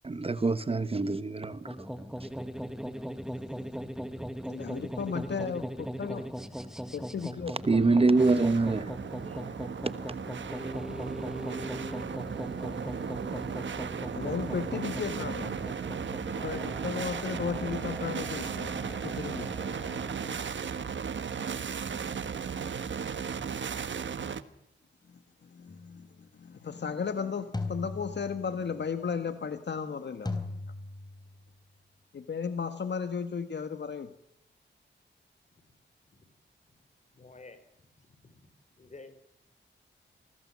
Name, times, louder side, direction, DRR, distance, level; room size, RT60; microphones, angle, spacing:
voice 1, 0.0-1.9 2.2-2.3 7.6-8.9 9.2-9.9, right 3 dB, 30° right, 1.0 m, -26 dB
sound 1, 1.7-20.5, equal, 5° right, 1.6 m, -39 dB
voice 2, 4.5-6.3 6.9-7.5 14.1-15.6 16.3-19.5 25.4-30.4 32.1-34.1, left 6 dB, 65° left, 1.6 m, -35 dB
sound 2, 7.7-24.4, right 6 dB, 75° right, 1.5 m, -36 dB
sound 3, 25.7-26.0 27.5-28.7 30.2-31.4, left 3 dB, 20° left, 3.6 m, -38 dB
voice 3, 37.1-37.7 38.0-38.5 38.8-39.1, left 3 dB, 40° left, 5.0 m, -51 dB
28.0 x 20.5 x 7.6 m
wide cardioid pair, 140°, 20 cm